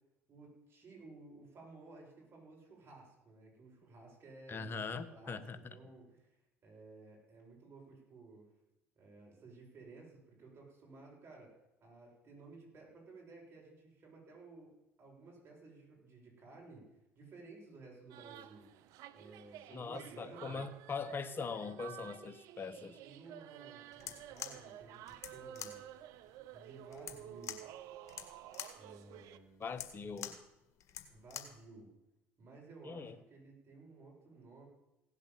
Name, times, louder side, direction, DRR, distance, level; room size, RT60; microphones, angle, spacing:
voice 1, 0.3-4.8 5.1-6.3 6.6-8.5 8.9-11.5 11.8-14.7 15.0-18.7 19.1-20.7 23.0-25.8 26.5-27.7 28.8-29.6 31.1-31.9 32.4-34.7, right 3 dB, 40° right, -2 dB, 7.7 m, -55 dB
voice 2, 4.5-5.6 19.7-23.0 29.6-30.4 32.8-33.1, left 5 dB, 35° left, 12 dB, 1.5 m, -41 dB
sound 1, 18.1-29.4, right 13 dB, 65° right, 0.8 m, -52 dB
sound 2, 23.9-31.6, left 9 dB, 55° left, 1.8 m, -48 dB
16.5 x 8.1 x 7.8 m, 0.91 s
hypercardioid pair, 65°, 6 cm